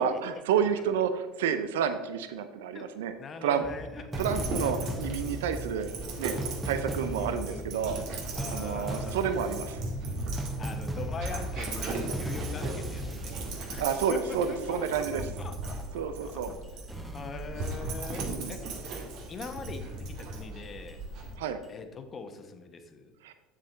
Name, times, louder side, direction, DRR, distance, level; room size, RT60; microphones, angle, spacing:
voice 1, 0.0-3.1 3.4-3.6 4.2-5.9 6.2-6.4 6.6-8.0 8.5-9.8 13.8-15.2 15.9-16.5 18.3-18.5 21.4-21.6 23.2-23.3, right 7 dB, 80° right, 10 dB, 0.5 m, -30 dB
voice 2, 3.2-4.9 7.1-7.7 8.4-9.2 10.6-13.3 13.7-13.8 14.1-16.4 17.1-18.7 19.3-21.0 21.7-23.1, left 4 dB, 35° left, 7 dB, 1.0 m, -42 dB
sound 1, 3.6-14.9 15.6-15.7 16.6-17.9 18.6-18.9 19.6-19.7 20.6-20.9 21.6-21.7, equal, 10° right, 1.1 m, -38 dB
Dog, 4.1-21.3, right 2 dB, 60° right, 1.7 m, -38 dB
7.5 x 7.3 x 3.9 m, 1.2 s
hypercardioid pair, 85°, 0 cm